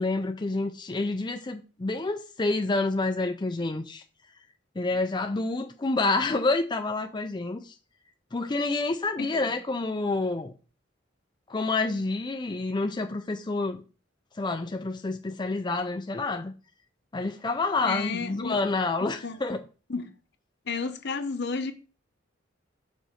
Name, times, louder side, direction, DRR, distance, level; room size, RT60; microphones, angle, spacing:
voice 1, 0.0-4.0 4.8-7.7 8.3-10.5 11.5-13.8 14.4-16.5 17.1-19.6, left 3 dB, 25° left, 0.5 m, -28 dB
voice 2, 9.2-9.5 17.8-18.6 19.0-19.4 19.9-20.1 20.7-21.7, left 4 dB, 60° left, 0.9 m, -32 dB
6.2 x 4.0 x 6.3 m
head